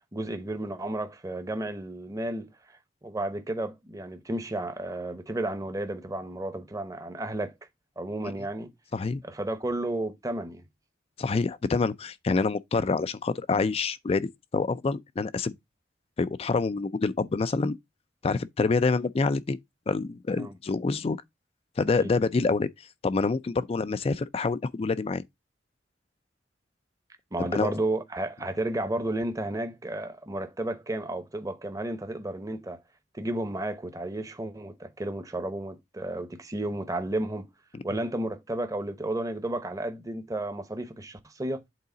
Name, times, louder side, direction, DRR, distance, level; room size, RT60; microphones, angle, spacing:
voice 1, 0.1-2.5 3.0-7.5 8.0-8.7 9.2-10.6 20.4-20.5 22.0-22.1 27.3-32.8 33.1-37.5 37.8-41.6, right 1 dB, 20° right, 0.8 m, -32 dB
voice 2, 11.2-15.5 16.2-17.8 18.2-19.6 19.9-21.2 21.8-22.7 23.0-25.2 27.4-27.7 37.7-37.8, left 4 dB, 35° left, 0.4 m, -27 dB
8.3 x 3.9 x 3.8 m
head